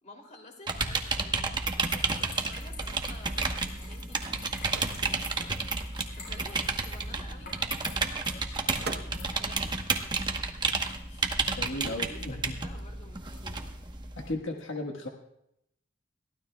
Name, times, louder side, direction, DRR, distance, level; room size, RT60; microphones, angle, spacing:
voice 1, 0.0-5.5 5.8-10.1 11.0-11.4 11.8-13.7, left 2 dB, 35° left, 2 dB, 2.8 m, -52 dB
sound 1, 0.7-14.3, right 3 dB, 25° right, 1.0 m, -31 dB
sound 2, 2.0-13.9, left 2 dB, 55° left, 6.9 m, -49 dB
Microwave oven, 3.9-11.0 11.3-13.2, right 4 dB, 55° right, 0.9 m, -48 dB
voice 2, 11.6-12.5 14.1-15.1, left 2 dB, 75° left, 2 dB, 1.4 m, -35 dB
21.5 x 15.5 x 2.3 m, 0.80 s
head